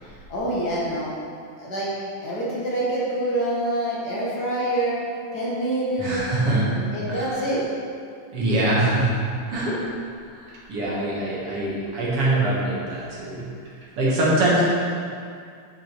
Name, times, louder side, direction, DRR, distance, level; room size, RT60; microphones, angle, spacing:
voice 1, 0.0-1.1 1.6-1.9 2.2-5.0 5.3-6.2 6.7-7.6, right 1 dB, 45° left, -7 dB, 1.3 m, -26 dB
voice 2, 6.0-6.7 7.1-7.5 8.3-9.1 9.5-9.8 10.3-13.5 14.0-14.6, right 1 dB, 50° right, -6 dB, 2.0 m, -23 dB
10.0 x 5.9 x 4.5 m, 2.3 s
omnidirectional pair, 4.2 m